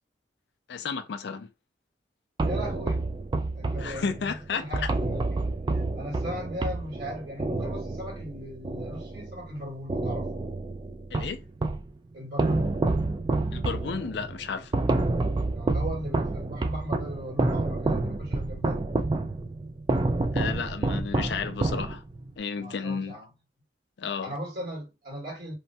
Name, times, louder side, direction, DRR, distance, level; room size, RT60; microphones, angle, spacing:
voice 1, 0.7-1.5 3.8-4.9 11.1-11.4 13.5-14.7 20.3-22.0 22.4-23.1 24.0-24.3, left 5 dB, 65° left, 0.4 m, -32 dB
sound 1, 2.4-9.5 9.9-11.9 12.4-22.3, right 2 dB, 25° right, 0.3 m, -29 dB
voice 2, 2.4-3.0 3.5-5.3 5.6-10.3 12.1-12.8 15.5-18.9 22.5-23.3 24.2-25.5, equal, 60° right, 1.7 m, -38 dB
3.1 x 2.2 x 2.6 m
head